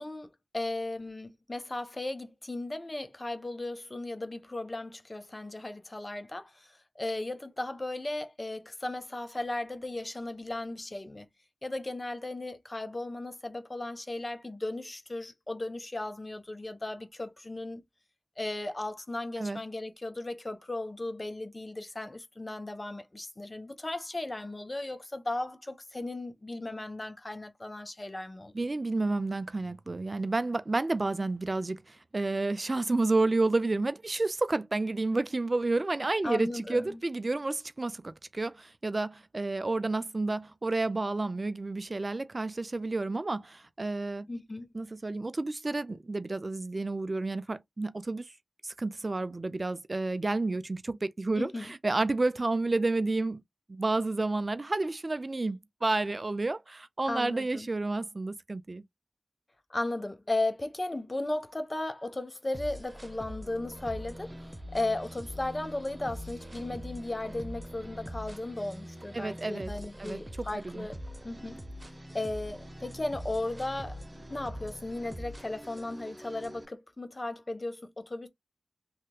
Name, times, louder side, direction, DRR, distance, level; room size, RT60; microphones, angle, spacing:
voice 1, 0.0-11.3 11.6-17.8 18.4-28.5 36.2-37.0 44.3-44.7 51.4-51.7 57.1-57.7 59.7-64.3 64.7-70.9 71.2-71.6 72.1-74.0 74.3-78.3, left 2 dB, 35° left, 0.8 m, -36 dB
voice 2, 28.5-44.3 44.7-48.4 48.6-53.4 53.7-58.8 69.1-69.7 70.0-70.9, right 2 dB, 45° right, 0.4 m, -30 dB
sound 1, 62.5-76.6, equal, 25° right, 0.8 m, -43 dB
3.3 x 2.9 x 2.3 m
cardioid pair, 45°, 0 cm